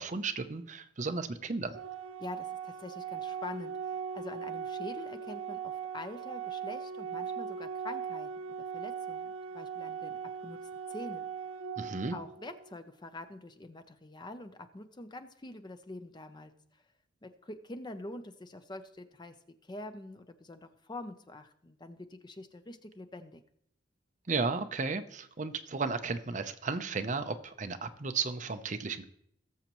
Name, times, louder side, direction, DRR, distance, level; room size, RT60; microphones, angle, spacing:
voice 1, 0.0-1.8 11.8-12.2 24.3-29.0, right 4 dB, 40° right, 8 dB, 0.6 m, -34 dB
Organ, 1.7-12.7, right 7 dB, 90° right, 0.6 m, -39 dB
voice 2, 2.2-10.6 10.9-11.3 12.1-16.8 17.2-23.4, left 2 dB, 20° left, 9 dB, 0.5 m, -45 dB
18.5 x 7.1 x 3.0 m, 0.73 s
head